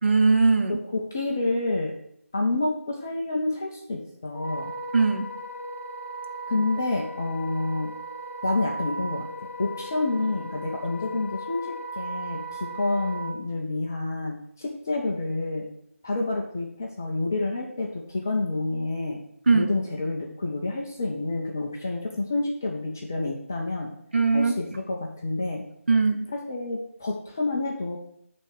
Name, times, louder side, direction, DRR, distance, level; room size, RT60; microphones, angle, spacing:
voice 1, 0.0-0.8 4.9-5.3 19.5-19.7 24.1-24.5 25.9-26.2, right 4 dB, 50° right, 5 dB, 0.9 m, -20 dB
voice 2, 0.7-1.9 2.3-4.7 6.5-7.9 8.4-9.3 9.6-11.7 12.0-15.7 16.0-19.2 19.5-23.9 24.3-25.6 26.3-28.0, left 2 dB, 10° left, 0 dB, 0.3 m, -28 dB
Wind instrument woodwind instrument, 4.3-13.3, right 2 dB, 50° left, 2.0 m, -37 dB
9.0 x 3.3 x 6.3 m, 0.72 s
figure-of-eight pair, 165°, 8 cm